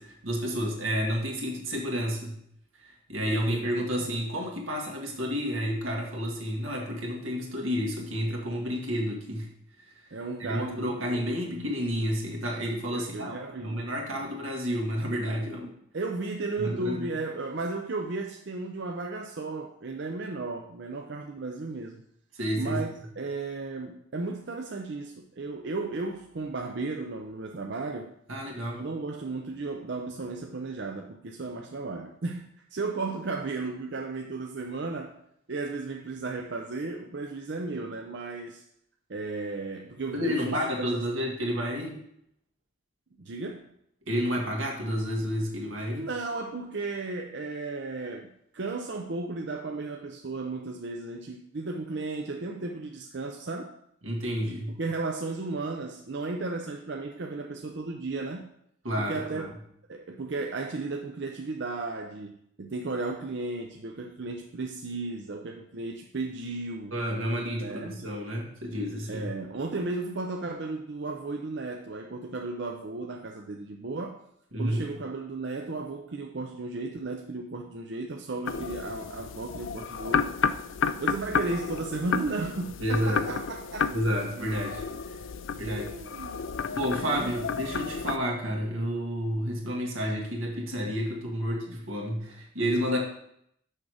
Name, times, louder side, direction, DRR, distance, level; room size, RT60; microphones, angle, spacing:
voice 1, 0.0-2.4 2.8-9.5 10.4-15.7 16.6-17.1 22.4-22.8 28.3-28.8 40.1-42.0 44.1-46.1 54.0-54.7 58.8-59.5 66.9-69.3 74.5-74.8 82.8-83.3 83.9-85.2 85.6-85.9 86.7-93.0, equal, 85° right, 0 dB, 2.0 m, -30 dB
voice 2, 10.1-11.7 12.9-13.8 14.1-14.3 15.9-22.0 22.5-28.1 28.7-35.2 35.5-38.6 39.1-41.1 43.2-43.7 46.0-53.8 54.8-58.5 59.0-59.5 59.9-67.0 67.6-68.1 69.1-74.2 74.6-80.3 81.0-83.9 85.6-86.4 87.0-87.4, right 3 dB, 60° right, 2 dB, 0.6 m, -34 dB
sound 1, 78.4-88.2, left 6 dB, 75° left, 0.4 m, -32 dB
6.5 x 6.1 x 4.9 m, 0.71 s
head